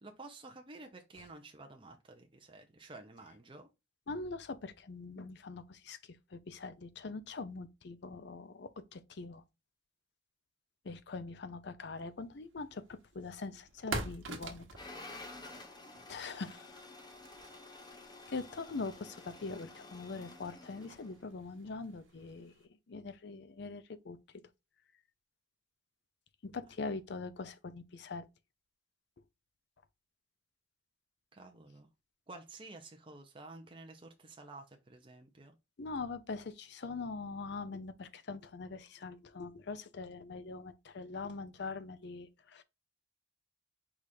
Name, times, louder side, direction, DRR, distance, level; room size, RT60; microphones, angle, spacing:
voice 1, 0.0-3.7 31.3-31.9 32.3-35.5, right 2 dB, 25° right, 0.6 m, -51 dB
voice 2, 4.1-9.4 10.8-14.8 16.1-16.8 18.3-24.2 26.4-28.3 35.8-42.6, left 3 dB, 60° left, 0.5 m, -43 dB
sound 1, 12.3-22.6, right 2 dB, 85° right, 1.1 m, -48 dB
sound 2, 14.8-21.2, left 2 dB, 20° left, 0.8 m, -51 dB
4.9 x 2.4 x 4.2 m
head